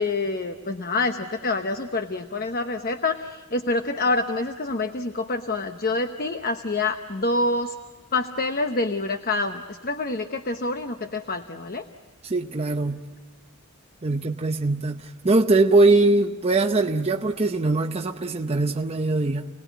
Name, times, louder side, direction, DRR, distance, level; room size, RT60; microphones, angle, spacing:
voice 1, 0.0-7.8 8.1-11.8, left 2 dB, 45° left, 7 dB, 1.0 m, -27 dB
voice 2, 12.2-13.0 14.0-19.5, right 2 dB, 30° right, 3 dB, 0.8 m, -21 dB
30.0 x 19.5 x 9.3 m, 1.4 s
head